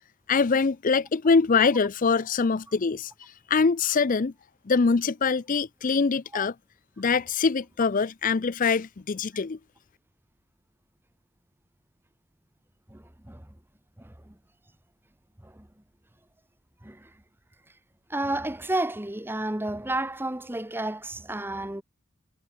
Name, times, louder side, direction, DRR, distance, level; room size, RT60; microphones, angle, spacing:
voice 1, 0.3-4.3 4.7-6.5 7.0-9.6, left 5 dB, 40° left, 0.5 m, -24 dB
voice 2, 12.9-13.5 14.0-14.3 15.4-15.7 16.8-17.1 18.1-21.8, right 1 dB, 10° right, 1.1 m, -31 dB
head